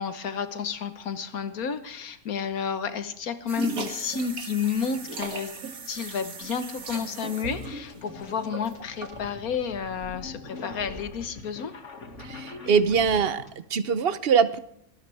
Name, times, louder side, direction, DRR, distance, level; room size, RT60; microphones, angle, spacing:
voice 1, 0.0-5.5 5.9-11.7, left 7 dB, 70° left, 11 dB, 1.7 m, -31 dB
sound 1, 3.5-9.3, right 4 dB, 70° right, 2.2 m, -37 dB
sound 2, 6.1-13.5, left 2 dB, 50° left, 2.4 m, -43 dB
voice 2, 12.2-14.6, right 6 dB, 50° right, 14 dB, 0.9 m, -23 dB
25.0 x 13.5 x 3.4 m, 0.70 s
omnidirectional pair, 1.6 m